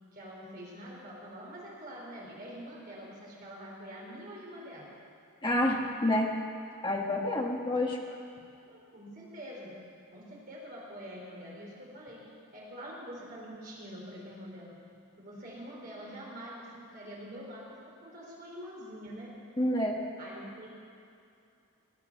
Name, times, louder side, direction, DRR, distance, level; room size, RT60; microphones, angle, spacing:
voice 1, 0.1-4.9 8.7-9.7 10.1-12.2 12.5-14.8 15.2-19.3 20.2-20.7, equal, 40° right, -4 dB, 4.1 m, -45 dB
voice 2, 5.4-6.3 6.8-8.0 19.6-20.0, left 1 dB, 20° left, 0 dB, 1.4 m, -28 dB
19.5 x 8.5 x 7.3 m, 2.5 s
head